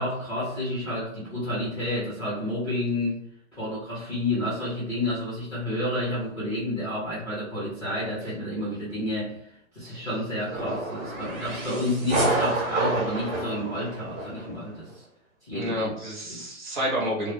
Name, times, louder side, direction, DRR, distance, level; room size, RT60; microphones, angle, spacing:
voice 1, 0.0-3.2 3.5-15.0 15.4-16.0 16.3-16.4, left 1 dB, 5° left, -20 dB, 0.5 m, -30 dB
sound 1, 10.5-14.5, right 2 dB, 60° right, 1.3 m, -29 dB
voice 2, 15.5-17.3, equal, 35° right, -3 dB, 0.8 m, -29 dB
2.4 x 2.1 x 3.2 m, 0.73 s
hypercardioid pair, 165°, 41 cm